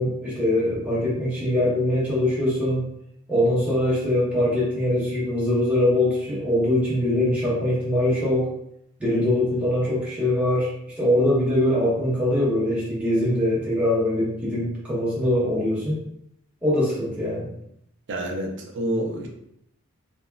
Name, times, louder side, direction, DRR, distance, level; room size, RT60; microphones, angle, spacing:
voice 1, 0.0-2.8 3.3-8.5 9.0-10.7 11.0-16.0 16.6-17.5, left 1 dB, 5° right, -8 dB, 1.0 m, -22 dB
voice 2, 18.1-19.3, right 1 dB, 55° right, 1 dB, 0.5 m, -28 dB
3.4 x 2.0 x 2.2 m, 0.76 s
head